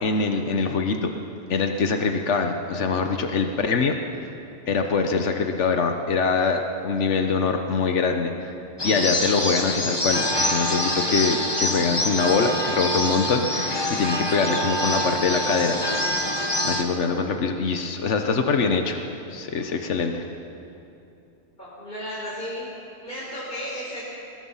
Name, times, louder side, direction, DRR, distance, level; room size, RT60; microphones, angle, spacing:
voice 1, 0.0-1.1 1.5-4.0 4.7-8.6 8.8-15.8 16.2-19.0 19.3-20.2, left 4 dB, 85° left, 5 dB, 1.4 m, -24 dB
sound 1, 8.8-16.8, left 1 dB, 20° left, 1.5 m, -25 dB
voice 2, 21.6-22.7 23.0-24.0, equal, 45° left, -8 dB, 5.0 m, -34 dB
23.5 x 20.5 x 5.7 m, 2.8 s
omnidirectional pair, 1.2 m